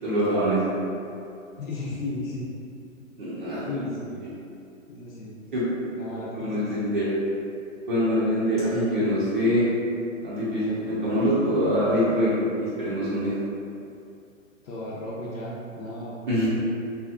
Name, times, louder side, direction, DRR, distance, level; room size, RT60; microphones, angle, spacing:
voice 1, 0.0-0.6 3.2-3.6 5.5-5.7 6.3-7.1 7.9-9.6 10.2-13.3 16.3-16.5, equal, 40° right, -11 dB, 0.6 m, -24 dB
voice 2, 1.6-2.5 3.0-3.1 3.6-4.3 4.9-5.4 5.9-6.9 10.6-11.1 14.6-16.1, left 1 dB, 85° left, -7 dB, 0.7 m, -35 dB
2.8 x 2.3 x 2.4 m, 2.6 s
hypercardioid pair, 160°, 40 cm